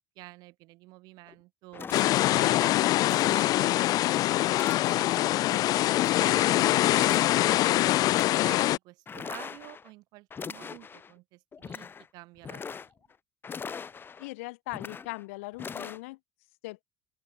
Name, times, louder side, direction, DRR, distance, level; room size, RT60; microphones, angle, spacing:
voice 1, 0.2-1.9 2.3-5.7 6.1-11.9 12.1-12.7, right 21 dB, 70° right, 6.3 m, -49 dB
sound 1, 1.3-1.4 1.7-2.6 3.1-3.9 4.5-5.3 5.8-6.6 6.9-7.7 8.0-8.6 9.1-9.9 10.3-11.1 11.5-12.1 12.4-13.1 13.4-14.3 14.7-15.2 15.6-16.0, left 6 dB, 30° left, 1.6 m, -41 dB
sound 2, 1.9-8.8, left 16 dB, 60° left, 1.2 m, -24 dB
voice 2, 14.2-16.2 16.6-16.8, left 22 dB, 85° left, 2.6 m, -39 dB
open air
supercardioid pair, 90°, 7 cm